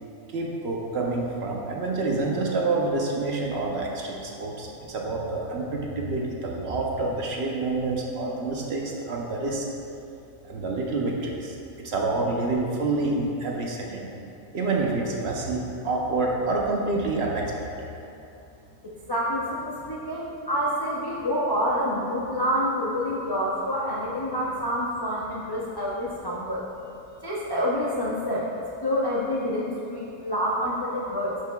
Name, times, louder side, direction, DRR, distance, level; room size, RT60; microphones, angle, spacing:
voice 1, 0.3-9.6 10.5-14.1 14.5-17.9, right 3 dB, 55° right, -1 dB, 0.9 m, -28 dB
voice 2, 18.8-26.6 27.2-31.4, equal, 40° left, -6 dB, 0.3 m, -27 dB
10.5 x 5.1 x 2.3 m, 2.7 s
omnidirectional pair, 1.5 m